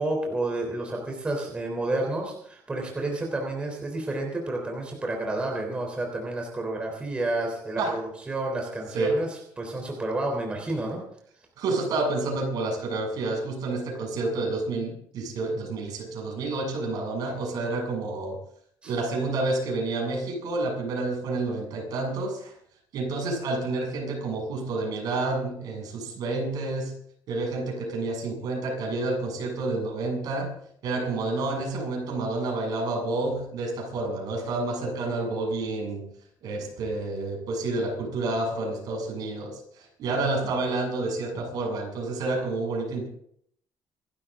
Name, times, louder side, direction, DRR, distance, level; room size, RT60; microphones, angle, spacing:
voice 1, 0.0-11.0 18.8-18.9, right 2 dB, 15° right, 1 dB, 3.5 m, -30 dB
voice 2, 11.6-18.4 18.8-22.5 22.9-26.9 27.3-30.5 30.8-36.1 36.4-43.1, right 2 dB, 60° right, 0 dB, 7.3 m, -29 dB
27.0 x 12.5 x 3.7 m, 0.67 s
cardioid pair, 165°, 7 cm